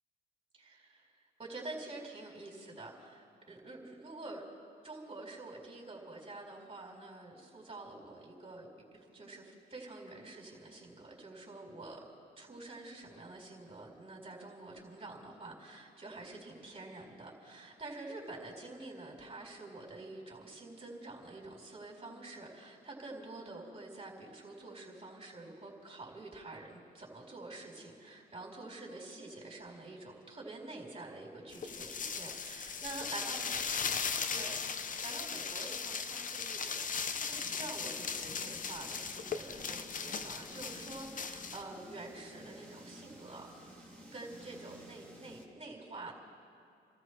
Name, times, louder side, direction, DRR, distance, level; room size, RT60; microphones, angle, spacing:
voice 1, 0.6-1.1 1.4-4.4 4.8-8.7 8.9-12.0 12.4-33.6 34.3-36.8 37.3-43.8 44.1-46.2, right 2 dB, 30° right, -2 dB, 4.4 m, -47 dB
sound 1, 31.5-41.6, left 6 dB, 40° left, 0.8 m, -38 dB
sound 2, 37.3-45.5, equal, 10° left, 2.9 m, -53 dB
29.5 x 14.0 x 3.3 m, 2.5 s
cardioid pair, 90°, 20 cm